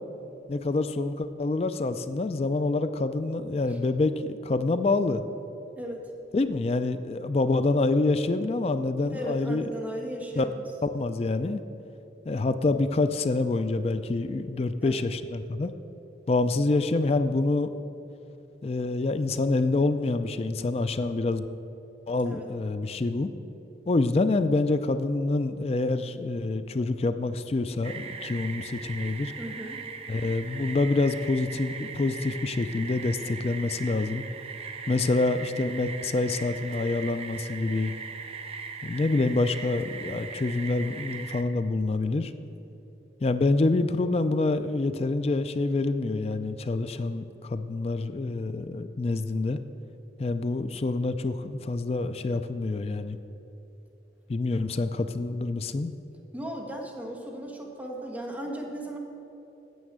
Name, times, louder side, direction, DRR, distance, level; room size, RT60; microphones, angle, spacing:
voice 1, 0.5-5.2 6.3-9.7 10.4-10.5 10.8-11.6 12.3-15.7 16.3-17.7 18.6-21.5 22.1-23.3 23.9-29.3 30.1-34.2 34.9-37.9 38.8-42.3 43.2-49.6 50.2-53.2 54.3-55.9, left 3 dB, 35° left, 10 dB, 0.4 m, -26 dB
voice 2, 9.1-10.6 14.8-15.0 22.2-22.5 29.4-29.8 56.3-59.0, right 1 dB, 10° right, -1 dB, 1.4 m, -36 dB
sound 1, 27.8-41.4, right 5 dB, 35° right, 0.6 m, -40 dB
9.4 x 7.4 x 7.9 m, 2.9 s
head